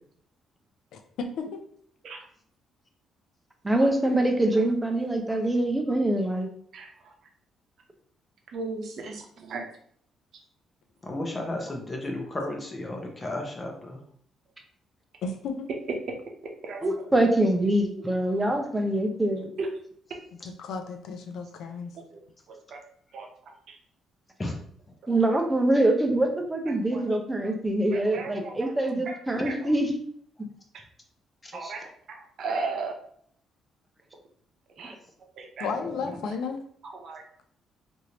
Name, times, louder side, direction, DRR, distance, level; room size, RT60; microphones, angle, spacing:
voice 1, 0.9-1.6 15.2-15.7 20.3-21.9 35.6-36.6, left 4 dB, 80° left, 5 dB, 0.5 m, -34 dB
voice 2, 3.6-6.5 16.8-19.5 25.1-30.0 31.5-31.7, right 1 dB, 15° right, 3 dB, 0.6 m, -24 dB
voice 3, 8.5-9.6 16.7-16.9 19.6-19.7 22.7-22.8 23.1-23.3 26.9-27.0 27.9-28.7 29.1-29.2 29.4-29.6 31.5-31.9 32.4-32.9 34.8-34.9 35.4-35.7 37.0-37.2, right 4 dB, 65° right, 2 dB, 0.7 m, -34 dB
voice 4, 11.0-14.0 24.4-24.6 28.9-29.0 29.4-29.5 31.4-31.5 36.0-36.1, left 1 dB, 25° left, 1 dB, 0.8 m, -33 dB
3.1 x 2.6 x 2.9 m, 0.62 s
cardioid pair, 90°, 0 cm